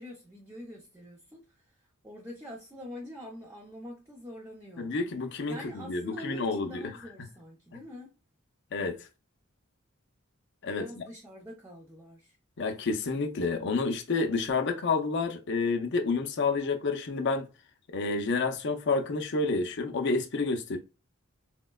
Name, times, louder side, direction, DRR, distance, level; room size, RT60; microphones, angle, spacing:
voice 1, 0.0-1.7 2.0-4.9 5.5-8.1 10.7-12.4, left 1 dB, 15° right, 0.6 m, -45 dB
voice 2, 4.8-6.7 8.7-9.0 10.6-11.0 12.6-17.5 17.9-20.8, left 3 dB, 60° left, 0.5 m, -29 dB
4.3 x 2.1 x 2.2 m
head